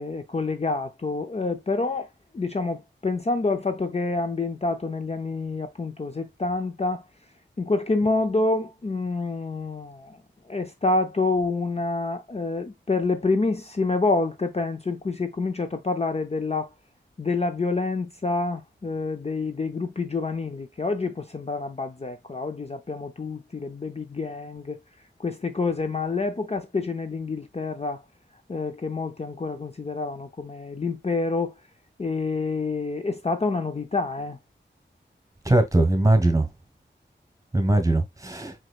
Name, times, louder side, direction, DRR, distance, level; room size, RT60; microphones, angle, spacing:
voice 1, 0.0-7.0 7.6-10.2 10.4-16.7 17.2-24.8 25.2-28.0 28.5-31.6 32.0-34.4, left 3 dB, 30° left, 0.5 m, -27 dB
voice 2, 35.4-36.5 37.5-38.5, right 2 dB, 15° right, 1.4 m, -20 dB
4.8 x 4.3 x 2.3 m
wide cardioid pair, 80°, 20 cm